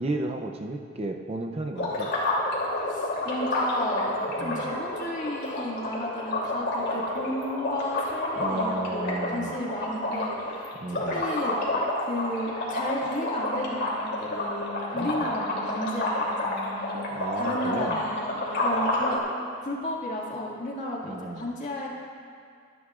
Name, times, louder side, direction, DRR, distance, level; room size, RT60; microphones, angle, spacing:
voice 1, 0.0-2.1 4.4-4.7 8.4-9.6 10.8-11.3 14.9-15.3 17.1-18.0 21.0-21.5, right 2 dB, 30° right, 3 dB, 0.5 m, -33 dB
sound 1, 1.8-19.2, left 1 dB, 55° left, 2.9 m, -29 dB
voice 2, 2.9-11.6 12.0-21.9, left 1 dB, 40° left, -3 dB, 2.1 m, -33 dB
24.0 x 11.0 x 2.5 m, 2.3 s
head